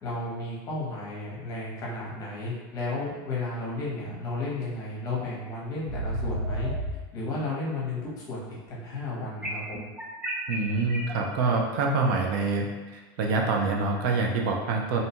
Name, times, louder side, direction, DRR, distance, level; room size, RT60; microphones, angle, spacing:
voice 1, 0.0-6.7 7.1-9.9, left 2 dB, 30° left, -5 dB, 0.8 m, -33 dB
sound 1, 5.2-5.3 5.9-6.9 9.4-11.1, right 1 dB, 10° right, 0.4 m, -31 dB
voice 2, 10.5-15.0, right 3 dB, 70° right, 1 dB, 0.4 m, -26 dB
2.6 x 2.2 x 2.8 m, 1.2 s
supercardioid pair, 155°, 12 cm